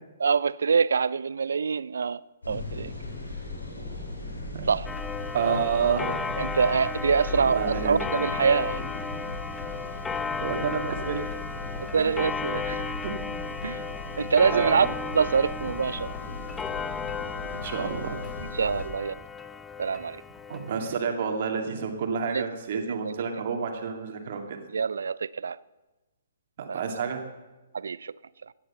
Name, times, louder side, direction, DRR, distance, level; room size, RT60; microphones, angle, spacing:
voice 1, 0.2-2.2 2.5-2.9 4.7-4.9 6.4-8.8 11.8-12.8 13.6-13.8 14.2-14.9 15.1-16.1 18.5-19.2 19.8-20.2 22.3-22.4 22.9-23.1 24.7-25.6 26.7-26.8 27.7-28.1, right 5 dB, 60° right, 0.4 m, -25 dB
sound 1, 2.4-18.9, left 3 dB, 70° left, 4.6 m, -38 dB
Clock, 4.9-21.0, left 5 dB, 10° left, 0.5 m, -35 dB
voice 2, 5.3-6.3 7.4-7.9 10.4-11.3 12.8-13.1 14.5-14.9 17.5-18.2 20.5-24.6 26.6-27.2, right 6 dB, 45° right, 2.3 m, -29 dB
16.5 x 10.0 x 6.8 m
figure-of-eight pair, 125°, 0 cm